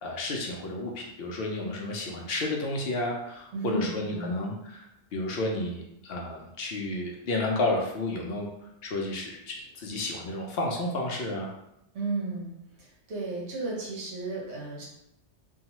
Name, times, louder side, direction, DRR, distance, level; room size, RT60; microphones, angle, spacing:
voice 1, 0.0-4.8 5.1-8.5 8.8-11.5, left 2 dB, 65° left, -1 dB, 0.7 m, -31 dB
voice 2, 3.5-4.4 11.9-12.5 12.8-14.8, right 2 dB, 70° right, -4 dB, 1.1 m, -33 dB
2.8 x 2.3 x 2.8 m, 0.82 s
omnidirectional pair, 1.2 m